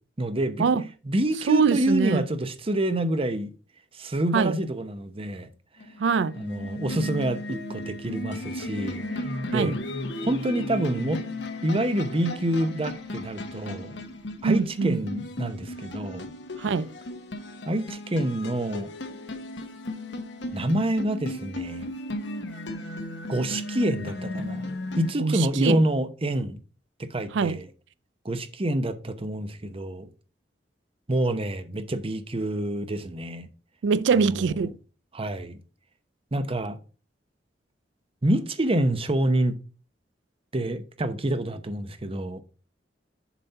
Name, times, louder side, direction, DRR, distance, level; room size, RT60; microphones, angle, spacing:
voice 1, 0.2-0.7 1.1-3.5 3.9-5.5 6.4-9.8 10.2-11.2 11.6-14.0 14.4-16.3 17.7-18.9 20.5-21.8 23.3-24.7 25.0-26.6 27.0-27.6 28.2-30.1 31.1-33.5 35.1-35.6 36.3-36.8 38.2-39.6 40.5-42.4, right 1 dB, 30° right, 0.8 m, -27 dB
voice 2, 1.5-2.2 4.3-4.6 6.0-6.3 9.5-9.8 14.4-15.0 16.6-16.9 25.2-25.8 27.3-27.6 33.8-34.7, right 5 dB, 75° right, 0.4 m, -23 dB
sound 1, 5.8-25.1, left 1 dB, 75° left, 1.1 m, -35 dB
7.1 x 4.3 x 5.4 m
head